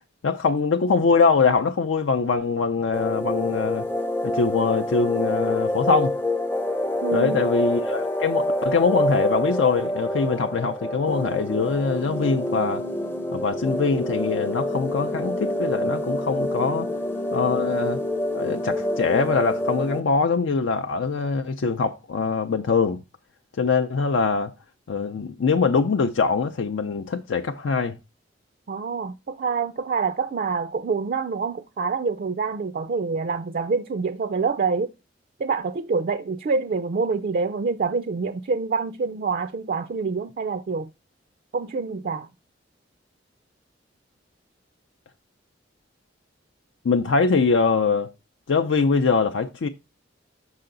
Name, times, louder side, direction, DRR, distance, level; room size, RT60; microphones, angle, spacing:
voice 1, 0.2-3.9 4.2-6.2 7.1-12.8 13.3-16.9 17.3-18.0 18.3-23.0 23.6-24.5 24.9-28.0 46.8-48.1 48.5-49.7, left 4 dB, 80° left, 0.5 m, -23 dB
sound 1, 2.9-20.0, left 1 dB, 10° left, 0.5 m, -27 dB
voice 2, 7.0-7.4 28.7-34.9 35.4-40.9 41.5-42.3, right 4 dB, 50° right, 0.4 m, -26 dB
5.7 x 5.7 x 3.8 m
head